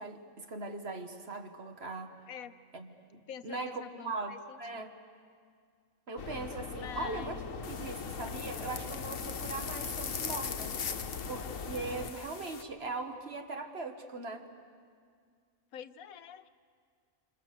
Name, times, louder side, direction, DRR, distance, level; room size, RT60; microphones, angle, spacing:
voice 1, 0.0-2.1 2.7-5.0 6.1-14.5, right 3 dB, 50° right, 6 dB, 1.7 m, -40 dB
voice 2, 3.3-4.9 6.8-7.5 15.7-16.5, left 8 dB, 90° left, 12 dB, 1.3 m, -46 dB
sound 1, 6.2-12.1, left 5 dB, 70° left, 1.5 m, -41 dB
sound 2, 7.6-12.6, left 6 dB, 50° left, 1.0 m, -41 dB
27.5 x 27.0 x 6.8 m, 2.1 s
omnidirectional pair, 1.4 m